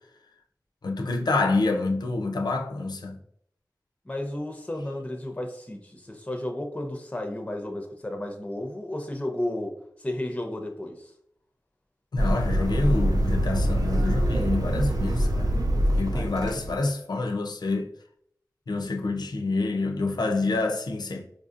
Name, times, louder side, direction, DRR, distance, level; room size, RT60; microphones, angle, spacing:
voice 1, 0.8-3.2 12.1-15.6 16.0-17.9 18.7-21.3, left 3 dB, 85° left, 0.4 m, -27 dB
voice 2, 4.1-9.7 10.0-11.1 16.1-16.6, left 1 dB, 20° left, 0.5 m, -33 dB
sound 1, 12.2-16.8, equal, 70° right, 0.5 m, -24 dB
4.7 x 2.6 x 2.4 m
wide cardioid pair, 65°, 7 cm